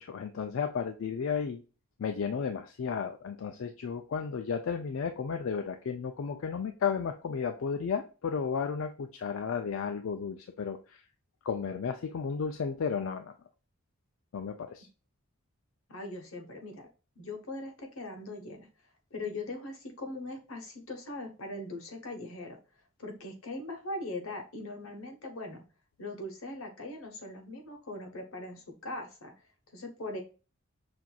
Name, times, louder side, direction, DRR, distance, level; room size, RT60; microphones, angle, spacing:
voice 1, 0.0-1.6 2.0-11.0 11.4-13.3 14.3-14.9, left 6 dB, 70° left, 6 dB, 0.4 m, -33 dB
voice 2, 15.9-16.8 17.2-18.7 19.1-22.6 23.0-25.6 26.0-29.3 29.7-30.2, left 2 dB, 85° left, 3 dB, 1.0 m, -40 dB
5.8 x 2.6 x 2.3 m, 0.34 s
head